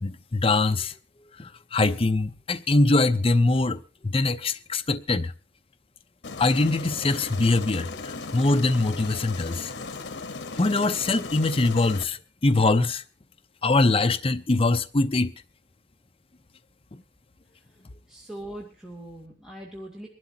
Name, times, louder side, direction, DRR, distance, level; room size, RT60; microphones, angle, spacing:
voice 1, 0.0-0.9 1.4-5.3 6.4-9.7 10.5-13.0 13.6-15.3, left 2 dB, 30° left, 0.6 m, -23 dB
Aircraft, 6.2-12.0, left 4 dB, 80° left, 1.1 m, -37 dB
voice 2, 18.1-20.1, right 1 dB, 5° right, 2.6 m, -40 dB
23.5 x 12.0 x 2.8 m
head